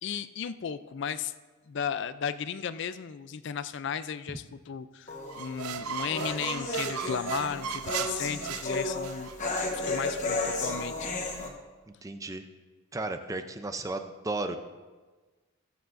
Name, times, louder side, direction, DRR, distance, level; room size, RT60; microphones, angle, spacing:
voice 1, 0.0-1.3 1.7-9.3 9.7-11.1, left 7 dB, 55° left, 13 dB, 0.4 m, -35 dB
sound 1, 5.1-11.5, left 2 dB, 35° left, 1.1 m, -33 dB
sound 2, 5.3-9.4, right 7 dB, 85° right, 0.5 m, -36 dB
voice 2, 12.0-12.5 12.9-14.6, right 2 dB, 15° right, 7 dB, 0.4 m, -34 dB
20.0 x 7.1 x 2.5 m, 1.3 s
head